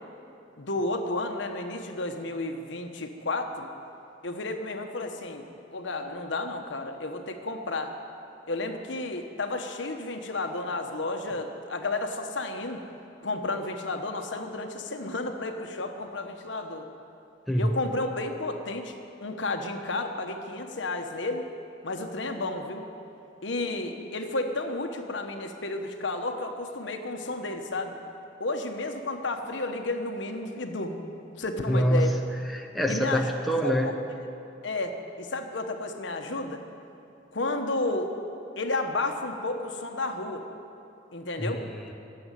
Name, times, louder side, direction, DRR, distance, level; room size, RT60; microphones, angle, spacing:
voice 1, 0.6-3.7 4.2-5.4 5.7-7.9 8.5-12.8 13.2-16.9 17.6-18.9 19.2-21.4 21.8-22.8 23.4-28.0 28.4-31.0 31.4-32.1 32.9-33.3 33.6-33.9 34.6-36.6 37.3-38.1 38.6-40.4 41.1-41.6, left 2 dB, 70° left, 5 dB, 1.2 m, -32 dB
voice 2, 31.7-32.1 32.5-33.9 41.4-41.9, equal, ahead, 1 dB, 0.9 m, -25 dB
17.0 x 7.8 x 9.9 m, 2.8 s
head